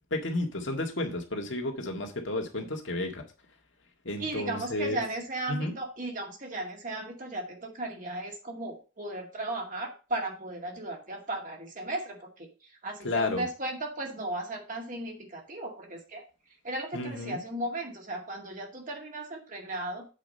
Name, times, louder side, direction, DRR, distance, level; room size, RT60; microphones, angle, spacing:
voice 1, 0.1-3.2 4.1-5.0 5.5-5.7 13.0-13.5 16.9-17.4, left 2 dB, 60° left, 3 dB, 1.9 m, -32 dB
voice 2, 4.2-12.5 12.8-16.2 16.6-20.1, right 1 dB, 40° right, 1 dB, 2.2 m, -36 dB
8.3 x 5.0 x 5.3 m, 0.33 s
head